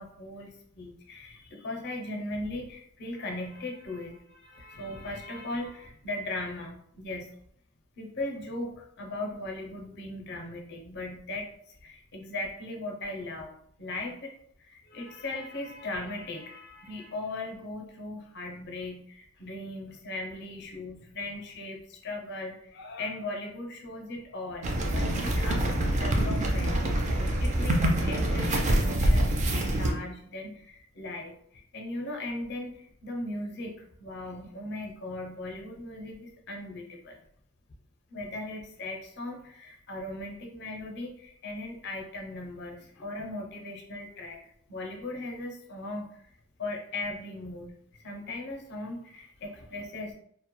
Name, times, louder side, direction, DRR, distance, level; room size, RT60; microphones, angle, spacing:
voice 1, 0.0-7.3 8.0-13.5 13.8-14.3 14.6-26.9 27.4-37.2 38.1-44.4 44.7-46.1 46.6-47.7 48.0-50.1, left 2 dB, 55° left, 1 dB, 0.5 m, -38 dB
sound 1, 24.6-29.9, right 1 dB, 35° right, 0.3 m, -25 dB
2.1 x 2.0 x 2.9 m, 0.68 s
head